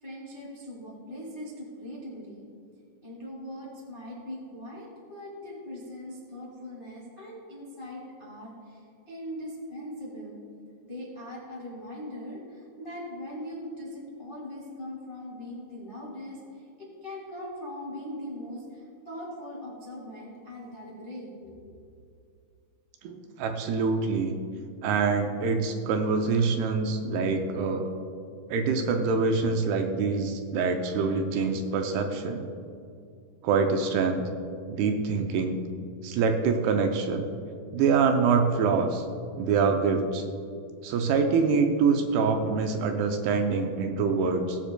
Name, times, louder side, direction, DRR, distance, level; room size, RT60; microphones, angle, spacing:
voice 1, 0.0-2.4 3.0-10.4 10.8-21.7, left 1 dB, 40° left, -4 dB, 0.7 m, -40 dB
voice 2, 23.0-24.4 24.8-27.9 28.5-32.5 33.4-34.2 34.7-35.6 36.0-37.3 37.7-39.0 39.4-40.2 40.8-44.6, right 5 dB, 80° right, 5 dB, 2.5 m, -25 dB
20.0 x 7.2 x 2.2 m, 2.4 s
omnidirectional pair, 4.7 m